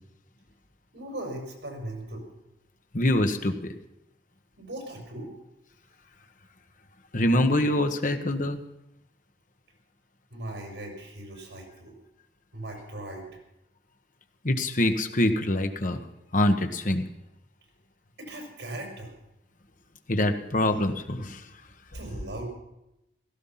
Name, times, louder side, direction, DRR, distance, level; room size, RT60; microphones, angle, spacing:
voice 1, 0.9-2.3 4.6-5.3 10.3-11.9 12.5-13.3 18.2-19.1 21.9-22.4, right 1 dB, 80° right, 2 dB, 5.6 m, -38 dB
voice 2, 2.9-3.7 7.1-8.6 14.4-16.0 16.3-17.0 20.1-21.4, left 1 dB, 50° left, 7 dB, 1.5 m, -24 dB
17.0 x 14.5 x 5.9 m, 0.87 s
head